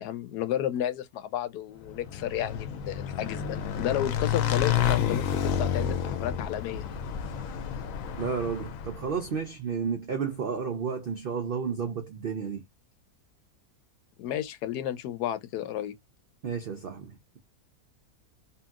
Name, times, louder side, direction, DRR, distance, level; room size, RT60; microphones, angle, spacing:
voice 1, 0.0-6.8 14.2-16.0, left 11 dB, 85° left, 1.2 m, -32 dB
Motorcycle / Engine, 1.9-9.3, left 8 dB, 70° left, 0.9 m, -30 dB
voice 2, 8.2-12.6 16.4-17.4, right 6 dB, 75° right, 0.5 m, -32 dB
2.8 x 2.7 x 2.3 m
omnidirectional pair, 1.7 m